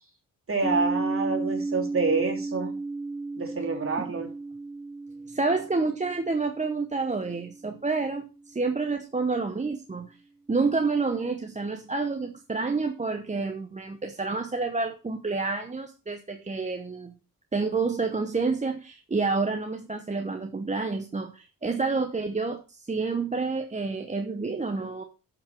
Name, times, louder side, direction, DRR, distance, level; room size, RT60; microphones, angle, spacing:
voice 1, 0.5-2.7 3.4-4.3, right 4 dB, 40° right, 0 dB, 3.1 m, -27 dB
sound 1, 0.6-8.4, right 3 dB, ahead, 2.5 m, -34 dB
voice 2, 5.3-10.2 10.5-17.2 17.5-25.0, right 4 dB, 20° right, 5 dB, 0.8 m, -29 dB
11.5 x 6.2 x 4.4 m, 0.33 s
cardioid pair, 85°, 35 cm